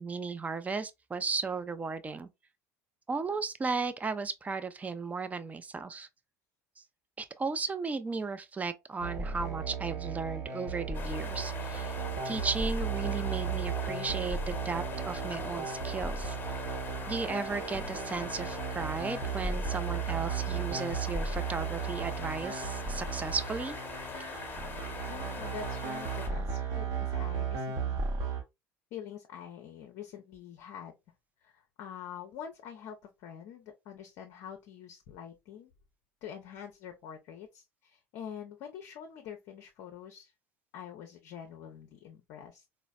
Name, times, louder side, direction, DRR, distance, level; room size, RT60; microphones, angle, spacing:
voice 1, 0.0-2.3 3.1-6.1 6.8-6.9 7.2-12.0 12.2-16.4 17.1-23.8, right 4 dB, 20° right, 0.4 m, -35 dB
sound 1, 9.0-28.4, right 5 dB, 50° right, 0.9 m, -35 dB
sound 2, 10.9-26.3, left 5 dB, 25° left, 0.9 m, -42 dB
voice 2, 25.0-28.1 28.9-30.9 31.4-35.7 36.2-40.3 40.7-42.6, left 8 dB, 55° left, 0.5 m, -45 dB
3.9 x 2.0 x 2.3 m
figure-of-eight pair, 70°, 8 cm